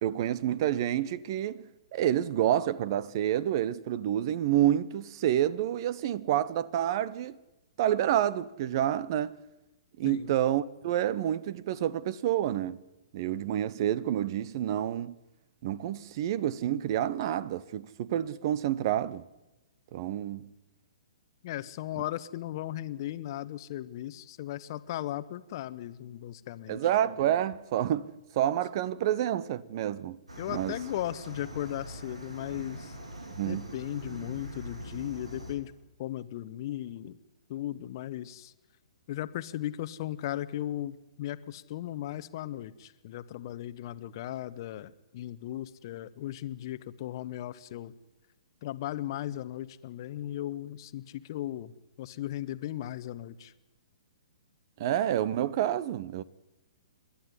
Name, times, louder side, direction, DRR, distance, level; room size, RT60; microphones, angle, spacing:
voice 1, 0.0-1.6 1.9-7.4 7.8-9.4 10.0-12.8 13.1-15.1 15.6-19.2 19.9-20.5 26.7-30.2 30.5-30.8 33.4-33.6 54.8-56.2, right 11 dB, 45° right, 0.9 m, -28 dB
voice 2, 10.0-10.3 21.4-26.8 30.4-33.0 33.4-35.7 36.0-37.2 37.5-38.5 39.1-47.9 48.6-51.7 52.0-53.5, left 13 dB, 45° left, 1.0 m, -37 dB
sound 1, 30.3-35.6, right 1 dB, 80° right, 4.2 m, -43 dB
28.5 x 11.5 x 9.9 m
figure-of-eight pair, 120°, 3 cm